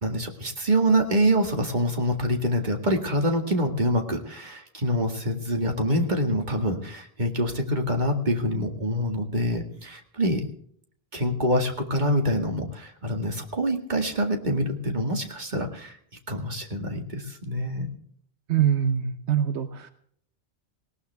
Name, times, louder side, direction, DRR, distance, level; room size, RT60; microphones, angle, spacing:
voice 1, 0.0-10.4 11.1-15.9 16.3-17.9, equal, 45° right, 3 dB, 2.2 m, -25 dB
voice 2, 18.5-19.9, right 9 dB, 80° right, 9 dB, 1.2 m, -24 dB
19.0 x 18.0 x 3.5 m, 0.64 s
omnidirectional pair, 1.1 m